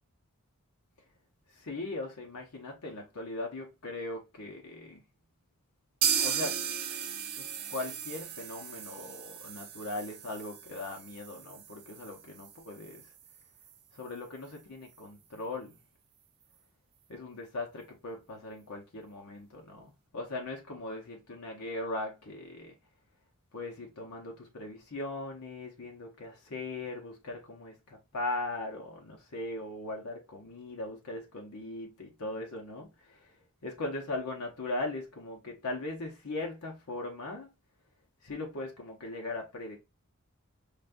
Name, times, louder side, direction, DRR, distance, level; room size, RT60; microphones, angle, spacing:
voice 1, 1.5-5.0 6.2-6.6 7.4-13.1 13.9-15.8 17.1-22.8 23.5-33.3 33.6-37.5 38.2-39.8, left 2 dB, 80° left, 0.9 m, -39 dB
sound 1, 6.0-13.7 14.0-14.1 14.5-14.6 15.0-15.1, right 8 dB, 45° right, 0.5 m, -36 dB
5.1 x 2.3 x 2.5 m
head